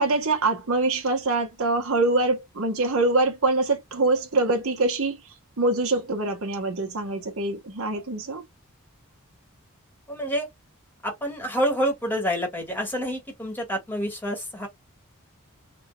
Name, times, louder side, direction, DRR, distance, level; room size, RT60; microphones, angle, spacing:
voice 1, 0.0-8.4, right 2 dB, 70° right, 1.3 m, -24 dB
voice 2, 10.1-10.5 11.0-14.7, equal, 10° left, 1.7 m, -27 dB
3.6 x 3.4 x 2.4 m
head